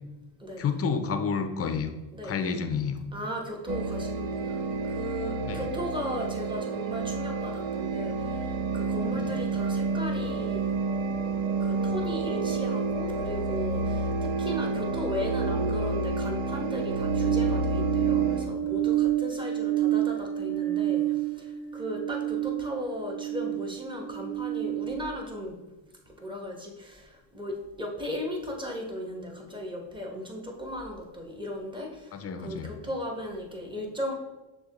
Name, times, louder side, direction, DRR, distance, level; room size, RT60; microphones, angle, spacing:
voice 1, 0.6-1.9 2.2-3.0 5.4-5.6 9.1-9.3 32.1-32.7, left 5 dB, 30° left, 8 dB, 0.5 m, -30 dB
voice 2, 3.1-4.6 4.9-10.7 11.6-25.6 26.2-34.1, left 1 dB, 10° right, 0 dB, 0.9 m, -36 dB
sound 1, 3.7-18.5, right 3 dB, 75° right, 0.6 m, -29 dB
sound 2, 16.9-25.0, right 14 dB, 50° right, 1.1 m, -29 dB
6.3 x 2.2 x 2.9 m, 1.1 s
supercardioid pair, 80°, 49 cm